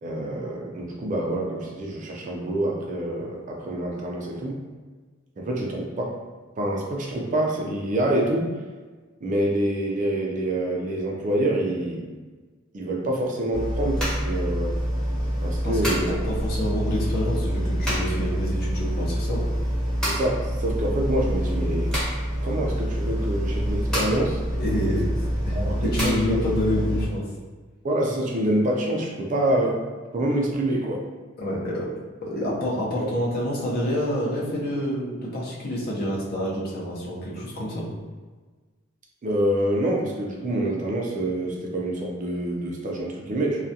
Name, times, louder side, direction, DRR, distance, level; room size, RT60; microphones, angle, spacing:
voice 1, 0.0-4.6 5.4-6.2 6.6-8.5 9.2-12.1 12.7-14.8 15.4-16.1 20.0-22.0 22.4-24.4 25.5-26.4 27.8-29.8 30.1-31.1 39.2-43.6, right 1 dB, 40° right, -1 dB, 0.4 m, -26 dB
sound 1, 13.5-27.1, equal, 5° left, 0.7 m, -26 dB
voice 2, 15.6-19.4 24.6-27.2 31.4-31.9 32.2-37.9, equal, 50° left, -5 dB, 0.6 m, -28 dB
2.3 x 2.1 x 2.6 m, 1.4 s
head